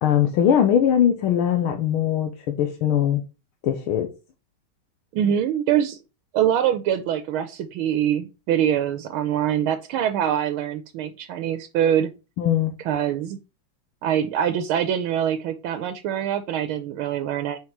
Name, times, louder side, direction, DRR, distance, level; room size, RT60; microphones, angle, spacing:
voice 1, 0.0-3.2 3.6-4.1 12.4-12.7, left 9 dB, 85° left, 1.7 m, -21 dB
voice 2, 5.1-6.0 6.3-12.1 12.8-13.4 14.0-17.6, right 9 dB, 90° right, 1.5 m, -24 dB
5.9 x 4.7 x 4.5 m
omnidirectional pair, 2.3 m